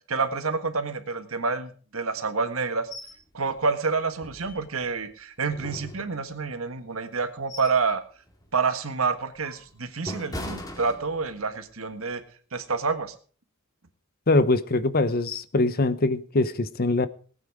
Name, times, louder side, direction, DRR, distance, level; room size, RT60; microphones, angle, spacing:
voice 1, 0.1-2.9 3.3-8.0 8.5-12.2 12.5-13.1, right 4 dB, 90° right, 9 dB, 1.6 m, -28 dB
sound 1, 2.9-3.2 3.6-3.7 4.2-5.0 5.5-6.5 7.1-7.9 8.3-8.5 9.1-11.5 11.9-12.1, left 1 dB, 20° left, 2.4 m, -40 dB
voice 2, 14.3-17.1, left 2 dB, 45° left, 15 dB, 0.8 m, -23 dB
19.0 x 9.1 x 4.8 m, 0.41 s
head